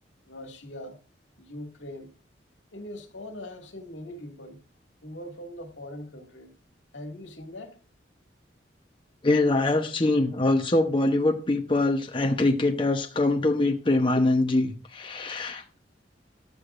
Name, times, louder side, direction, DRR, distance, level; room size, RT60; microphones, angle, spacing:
voice 1, 0.3-1.0 1.4-2.1 2.7-4.6 5.0-6.5 6.9-7.8, left 1 dB, 85° left, 2.0 m, -41 dB
voice 2, 9.2-15.6, left 2 dB, 25° left, 0.8 m, -23 dB
14.5 x 11.0 x 2.5 m
head